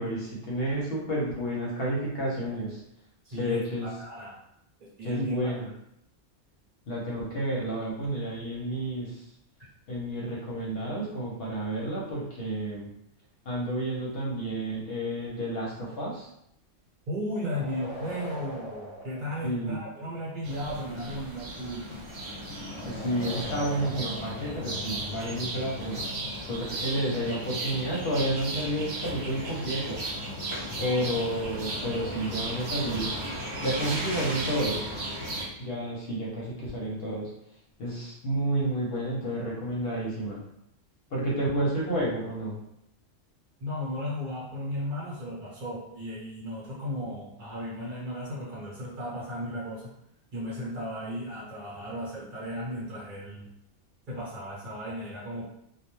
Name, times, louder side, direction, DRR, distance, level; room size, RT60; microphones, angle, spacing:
voice 1, 0.0-2.8 3.4-3.9 5.0-5.6 6.9-9.2 9.9-12.9 13.5-16.3 19.4-19.8 22.8-26.0 26.5-30.1 30.8-33.1 33.6-34.9 35.6-37.3 37.8-40.4 41.1-42.6, right 1 dB, 60° left, -4 dB, 0.8 m, -30 dB
voice 2, 3.2-4.4 4.8-5.6 17.1-21.9 30.7-31.1 43.6-49.8 50.3-53.5 54.1-55.4, equal, 50° right, -6 dB, 0.9 m, -35 dB
sound 1, 17.3-20.0 22.6-25.3, equal, 20° right, 0.8 m, -42 dB
sound 2, 20.4-35.5, right 1 dB, 65° right, 0.9 m, -35 dB
2.2 x 2.1 x 3.0 m, 0.77 s
omnidirectional pair, 1.2 m